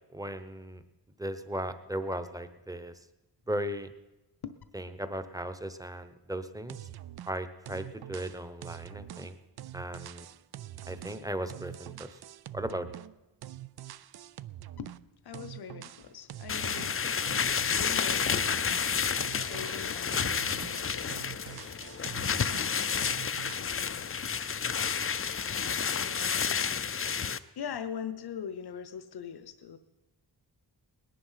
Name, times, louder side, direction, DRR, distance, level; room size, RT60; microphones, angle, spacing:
voice 1, 0.1-0.8 1.2-2.9 3.5-3.9 4.7-6.8 7.3-9.3 9.7-10.3 10.9-12.1 12.5-12.9, right 1 dB, 10° right, 10 dB, 0.9 m, -36 dB
sound 1, 6.7-7.4 7.7-13.2 13.4-15.0 15.3-17.0 17.3-20.8 21.1-22.7 23.0-23.7, right 13 dB, 65° right, 0.5 m, -45 dB
voice 2, 15.2-17.0 17.7-21.4 22.3-23.0 23.6-24.1 25.9-26.8 27.6-29.8, left 7 dB, 65° left, 11 dB, 0.9 m, -42 dB
sound 2, 16.5-27.4, left 6 dB, 30° left, 0.5 m, -30 dB
19.0 x 10.5 x 5.8 m, 1.0 s
wide cardioid pair, 120°, 42 cm